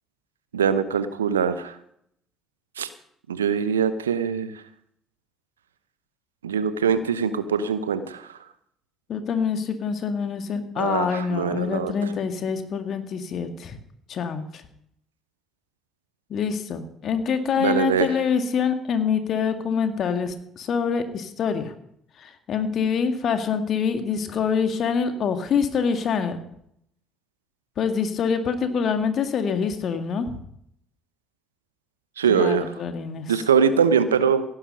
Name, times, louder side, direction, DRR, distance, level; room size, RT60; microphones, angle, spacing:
voice 1, 0.5-1.7 2.8-2.9 3.3-4.5 6.4-8.4 10.8-11.9 17.6-18.1 32.2-32.7 33.3-34.4, right 7 dB, 85° right, 13 dB, 0.8 m, -22 dB
voice 2, 9.1-13.8 14.1-14.4 16.3-21.7 22.2-26.4 27.8-30.4 32.3-33.3, left 6 dB, 50° left, 8 dB, 1.9 m, -25 dB
17.0 x 9.8 x 5.4 m, 0.70 s
figure-of-eight pair, 50°, 0 cm